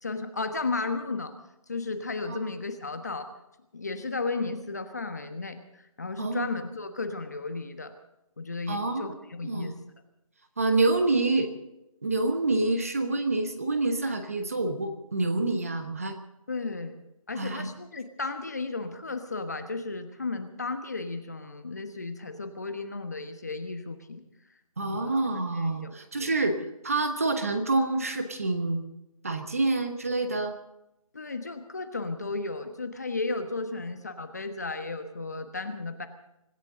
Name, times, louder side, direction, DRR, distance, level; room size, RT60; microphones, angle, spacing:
voice 1, 0.0-1.3 1.7-3.3 3.7-7.9 8.4-9.7 16.5-17.0 17.3-24.2 24.8-25.1 25.5-26.3 31.1-36.1, left 3 dB, 30° left, 8 dB, 1.2 m, -34 dB
voice 2, 8.7-9.1 9.4-9.7 10.6-11.5 12.0-16.2 17.4-17.7 24.8-28.8 29.2-30.6, right 2 dB, 25° right, 7 dB, 1.2 m, -27 dB
25.5 x 14.5 x 3.9 m, 0.87 s
figure-of-eight pair, 175°, 18 cm